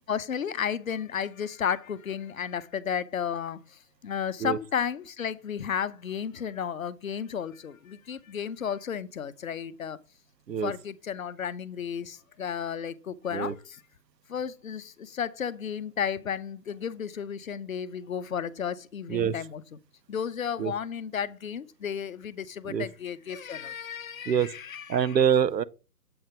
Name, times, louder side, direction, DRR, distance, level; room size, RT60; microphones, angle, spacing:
voice 1, 0.1-3.6 4.0-10.0 10.6-13.6 14.3-14.8 15.2-19.6 20.1-25.2, left 8 dB, 55° left, 0.7 m, -33 dB
voice 2, 24.9-25.6, right 8 dB, 75° right, 0.7 m, -25 dB
7.8 x 3.7 x 5.5 m
figure-of-eight pair, 150°, 50 cm